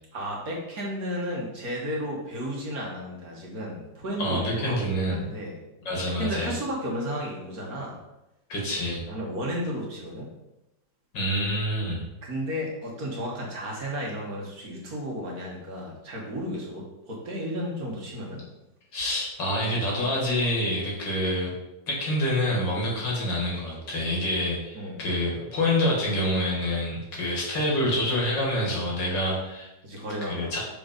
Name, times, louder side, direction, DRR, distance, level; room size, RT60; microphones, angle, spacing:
voice 1, 0.1-5.6 6.1-8.0 9.1-10.3 12.2-18.4 24.7-25.0 29.8-30.6, equal, 55° right, -2 dB, 1.7 m, -33 dB
voice 2, 4.2-5.2 5.9-6.5 8.5-9.0 11.1-12.0 18.9-21.5 21.9-29.7 30.2-30.6, left 1 dB, 70° left, -3 dB, 2.4 m, -27 dB
6.0 x 3.9 x 5.1 m, 0.94 s
omnidirectional pair, 2.1 m